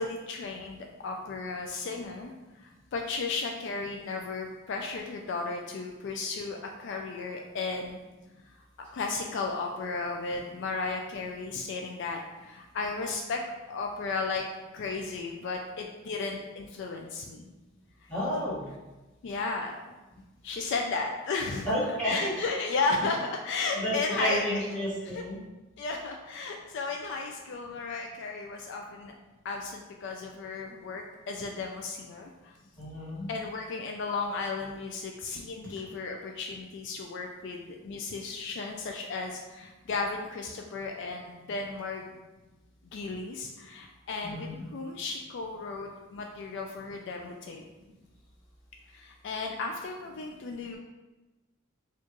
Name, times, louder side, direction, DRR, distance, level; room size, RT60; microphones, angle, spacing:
voice 1, 0.0-2.3 2.6-8.0 8.8-13.4 13.7-14.4 14.7-17.5 18.0-18.1 19.2-19.8 20.4-21.7 22.0-24.6 25.0-25.2 25.8-29.1 29.4-32.5 33.3-42.0 42.8-47.6 48.9-50.8, left 4 dB, 60° left, 2 dB, 0.3 m, -34 dB
voice 2, 18.1-18.7 21.6-22.3 23.7-25.4 32.8-33.3 44.2-44.5, equal, 5° left, -10 dB, 1.4 m, -31 dB
4.4 x 2.4 x 2.9 m, 1.1 s
head